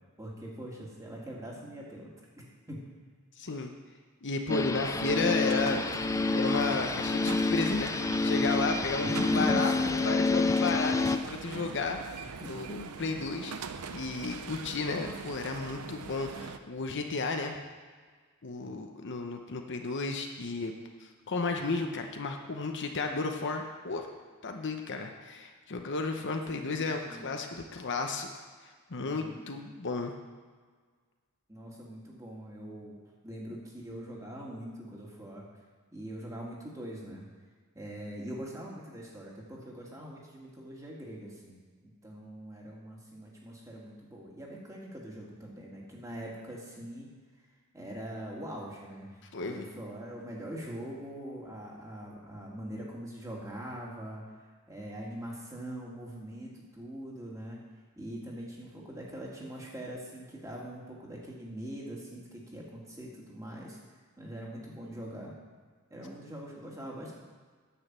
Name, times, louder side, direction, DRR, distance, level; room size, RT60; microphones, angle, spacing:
voice 1, 0.2-2.1 2.4-2.8 9.0-9.9 11.5-11.8 12.4-12.6 18.6-18.9 26.2-27.3 29.0-29.4 31.5-33.0 33.2-35.5 35.9-37.3 37.7-47.1 47.7-54.2 54.7-57.7 58.0-63.8 64.2-65.3 65.9-67.1, right 1 dB, 15° right, -3 dB, 2.2 m, -42 dB
voice 2, 3.4-3.7 4.2-5.8 6.3-7.9 8.2-9.7 10.0-13.5 13.9-17.6 18.4-20.7 21.0-24.1 24.4-28.4 28.9-30.1 49.3-49.6, left 3 dB, 55° left, 4 dB, 0.9 m, -33 dB
sound 1, 4.5-11.2, left 3 dB, 15° left, 0.3 m, -28 dB
sound 2, 4.8-16.6, right 5 dB, 85° right, 0.6 m, -42 dB
9.8 x 6.4 x 7.5 m, 1.5 s
head